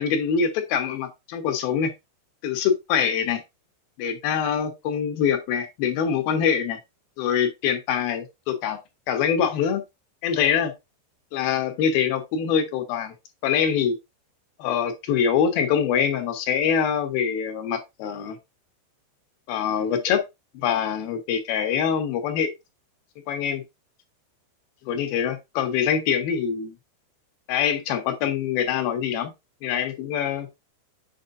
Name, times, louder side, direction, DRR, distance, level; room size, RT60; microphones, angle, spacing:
voice 1, 0.0-1.9 2.4-3.4 4.0-6.8 7.2-8.8 9.1-9.8 10.2-10.7 11.3-13.1 13.4-14.0 14.6-18.4 19.5-20.2 20.5-22.5 23.3-23.6 24.9-26.8 27.5-29.3 29.6-30.5, left 7 dB, 70° left, 2.4 m, -24 dB
7.7 x 5.1 x 2.5 m
omnidirectional pair, 5.5 m